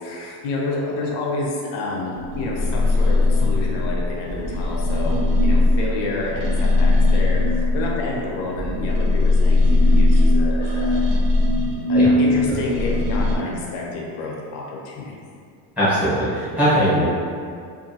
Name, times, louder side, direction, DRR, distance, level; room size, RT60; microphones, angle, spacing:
voice 1, 0.0-11.0 11.9-15.1, left 2 dB, 60° left, -3 dB, 0.6 m, -29 dB
sound 1, 2.1-8.2 8.5-13.4, left 2 dB, 85° right, 0.6 m, -19 dB
voice 2, 15.8-17.0, equal, 5° right, -10 dB, 0.8 m, -19 dB
2.5 x 2.4 x 2.6 m, 2.3 s
cardioid pair, 150°, 48 cm